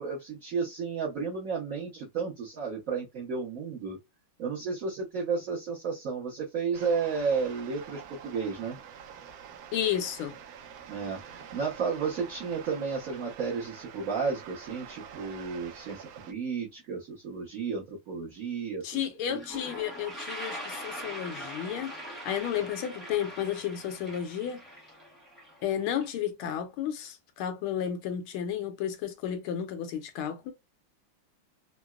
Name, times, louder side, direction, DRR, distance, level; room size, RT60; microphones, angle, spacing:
voice 1, 0.0-4.0 4.4-8.8 10.9-18.9 19.2-19.4, right 5 dB, 60° right, 0.9 m, -32 dB
sound 1, 6.7-16.3, right 8 dB, 80° right, 0.9 m, -47 dB
voice 2, 9.7-10.4 18.8-22.0 22.2-24.6 25.6-30.5, left 9 dB, 80° left, 1.4 m, -32 dB
Toilet flush, 18.9-19.0 19.2-26.1, equal, ahead, 0.7 m, -42 dB
3.8 x 2.0 x 2.3 m
omnidirectional pair, 2.3 m